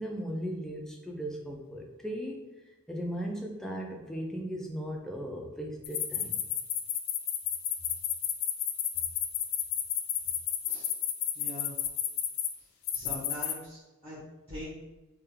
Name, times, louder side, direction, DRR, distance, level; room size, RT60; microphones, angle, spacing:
voice 1, 0.0-2.4 2.9-6.4, equal, ahead, 0 dB, 0.3 m, -37 dB
sound 1, 5.8-12.5 12.9-13.5, left 10 dB, 85° left, 0.4 m, -31 dB
voice 2, 11.3-11.7 12.9-14.2 14.5-14.7, left 1 dB, 30° right, -12 dB, 0.9 m, -42 dB
3.4 x 2.2 x 3.2 m, 1.1 s
head